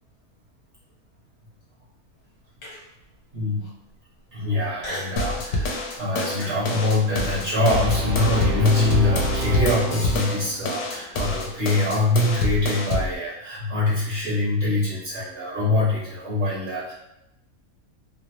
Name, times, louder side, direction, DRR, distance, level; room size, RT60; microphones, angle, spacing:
Human voice, 2.6-3.0 3.6-3.7 4.8-5.3 5.7-6.0 6.4-8.5, left 1 dB, 55° left, 1.2 m, -38 dB
voice 1, 4.3-16.9, left 2 dB, 55° right, -8 dB, 1.1 m, -24 dB
sound 1, 5.2-13.1, left 2 dB, 90° left, 1.1 m, -27 dB
Brass instrument, 7.7-10.8, right 1 dB, 75° right, 1.1 m, -28 dB
3.1 x 2.0 x 2.8 m, 0.88 s
omnidirectional pair, 1.6 m